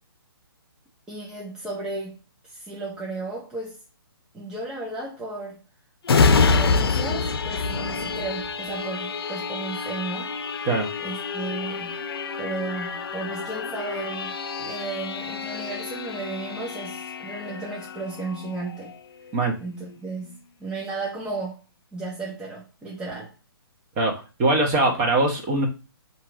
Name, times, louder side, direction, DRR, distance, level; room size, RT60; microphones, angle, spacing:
voice 1, 1.1-3.8 4.3-5.6 6.1-10.3 11.0-12.1 12.4-19.0 19.6-21.6 21.9-23.3, right 3 dB, 5° right, 0.7 m, -34 dB
sound 1, 6.0-19.4 19.8-20.0, left 4 dB, 70° left, 0.6 m, -27 dB
voice 2, 24.0-25.7, right 2 dB, 25° right, 1.1 m, -22 dB
3.8 x 2.8 x 4.6 m
hypercardioid pair, 150°, 13 cm